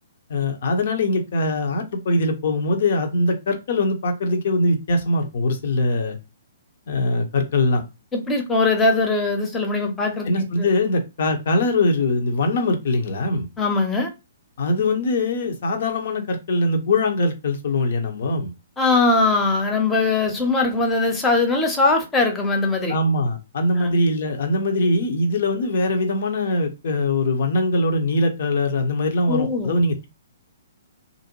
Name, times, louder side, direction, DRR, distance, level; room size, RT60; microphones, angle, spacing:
voice 1, 0.3-6.2 6.9-7.8 10.2-13.5 14.6-18.5 22.9-30.1, left 2 dB, 50° left, 0.7 m, -22 dB
voice 2, 8.1-10.7 13.6-14.1 18.8-23.0 23.7-23.9 29.3-29.8, left 3 dB, 15° left, 0.7 m, -21 dB
2.5 x 2.1 x 2.9 m
figure-of-eight pair, 120°, 0 cm